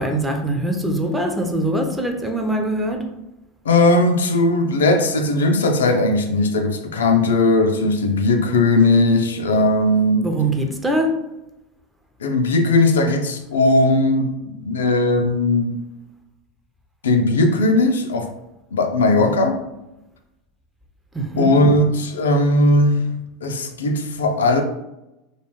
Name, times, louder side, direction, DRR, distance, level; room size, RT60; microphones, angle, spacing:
voice 1, 0.0-3.1 10.2-11.2 21.1-21.5, right 1 dB, 10° right, 0.5 m, -22 dB
voice 2, 3.7-10.3 12.2-15.8 17.0-18.3 18.7-19.6 21.4-23.2 23.4-24.6, left 2 dB, 85° left, 0.3 m, -18 dB
2.3 x 2.2 x 3.0 m
hypercardioid pair, 95°, 0 cm